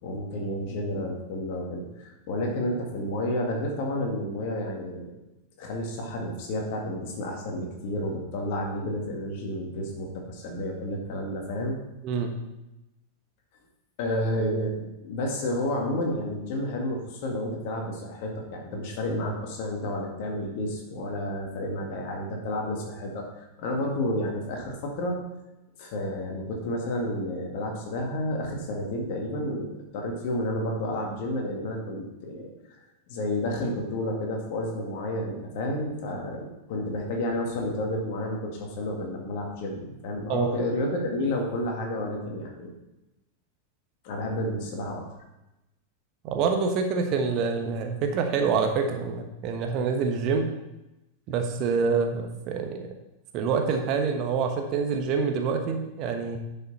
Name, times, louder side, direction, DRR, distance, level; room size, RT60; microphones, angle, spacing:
voice 1, 0.0-5.2 5.6-11.8 14.0-25.2 25.8-32.5 33.1-42.7 44.0-45.0, left 1 dB, 50° left, 1 dB, 2.1 m, -31 dB
voice 2, 12.0-12.3 40.3-40.5 46.2-50.5 51.3-52.9 53.3-56.4, right 5 dB, 40° right, 4 dB, 1.1 m, -26 dB
10.5 x 5.8 x 4.2 m, 0.95 s
figure-of-eight pair, 90°, 0 cm